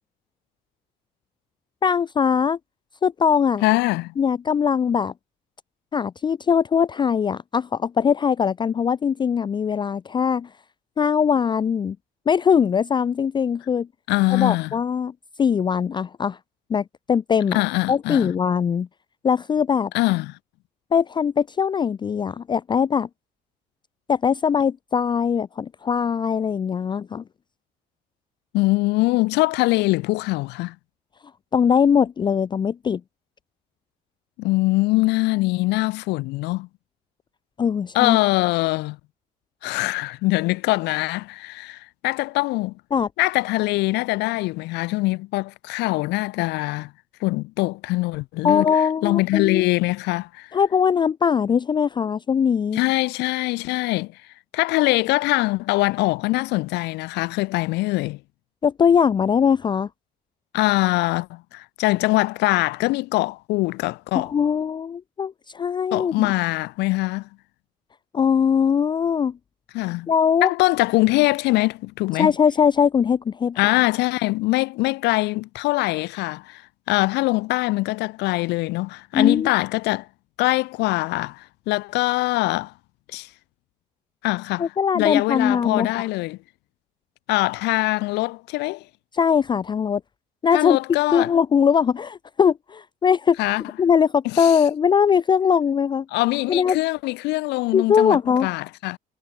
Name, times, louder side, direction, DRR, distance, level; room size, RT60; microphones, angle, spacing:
voice 1, 1.8-2.6 3.0-3.6 4.2-5.1 5.9-10.5 11.0-12.0 12.3-13.9 14.3-15.1 15.4-16.4 16.7-17.6 17.9-18.9 19.2-19.9 20.9-23.1 24.1-27.2 31.5-33.0 37.6-38.2 42.9-43.1 48.4-49.6 50.5-52.8 58.6-59.9 64.1-66.3 68.1-69.3 70.1-70.5 72.2-73.6 79.1-79.5 84.6-85.9 89.1-90.0 90.4-90.8 91.1-93.4 93.8-96.1 96.5-96.8 97.7-98.5, left 7 dB, 25° left, 0.4 m, -21 dB
voice 2, 3.6-4.1 14.1-14.7 17.5-18.3 19.9-20.4 28.5-30.8 34.4-36.7 37.9-39.0 39.6-42.7 43.2-46.9 47.2-48.7 49.0-50.6 52.7-54.1 54.5-58.2 60.5-64.3 65.9-67.3 69.7-70.1 70.4-72.3 73.6-76.6 76.9-80.1 80.4-82.7 83.1-83.3 84.2-86.4 87.3-88.8 90.5-91.3 93.4-93.6 94.2-94.6 96.1-99.0, left 21 dB, 85° left, 0.6 m, -23 dB
cardioid pair, 110°, 17 cm